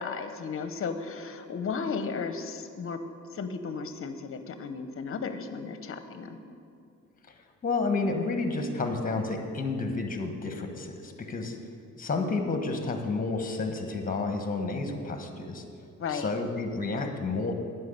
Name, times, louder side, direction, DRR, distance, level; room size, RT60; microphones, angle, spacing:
voice 1, 0.0-3.0 3.3-6.4 16.0-16.3, left 5 dB, 45° left, 9 dB, 0.9 m, -34 dB
voice 2, 7.6-11.6 12.0-15.6 16.1-17.5, left 3 dB, 30° left, 5 dB, 1.3 m, -30 dB
9.4 x 5.8 x 8.2 m, 2.4 s
cardioid pair, 90°, 30 cm